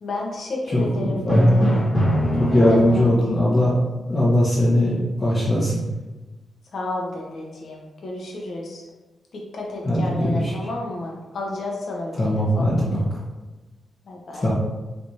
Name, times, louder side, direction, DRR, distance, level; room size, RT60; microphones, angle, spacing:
voice 1, 0.0-1.8 2.5-3.1 6.7-8.8 9.3-12.7 14.1-14.5, left 2 dB, 65° left, -1 dB, 0.8 m, -31 dB
voice 2, 0.7-1.6 2.4-3.7 4.1-5.8 9.8-10.5 12.1-13.0 14.4-14.5, left 1 dB, 25° left, -8 dB, 0.8 m, -20 dB
Drum, 1.3-3.3, equal, 5° left, 1.1 m, -20 dB
3.3 x 3.1 x 2.7 m, 1.2 s
cardioid pair, 100°, 0 cm